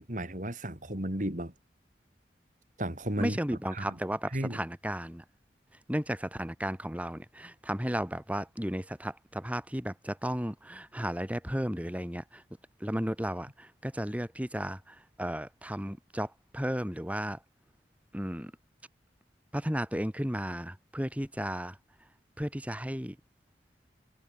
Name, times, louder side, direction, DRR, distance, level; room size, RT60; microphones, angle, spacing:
voice 1, 0.0-1.5 2.8-3.4 3.7-3.9 4.3-4.6, right 1 dB, 45° right, 4.1 m, -33 dB
voice 2, 3.2-5.2 5.9-12.4 12.8-17.4 18.1-18.5 19.5-21.8 22.4-23.2, equal, 10° right, 3.0 m, -34 dB
head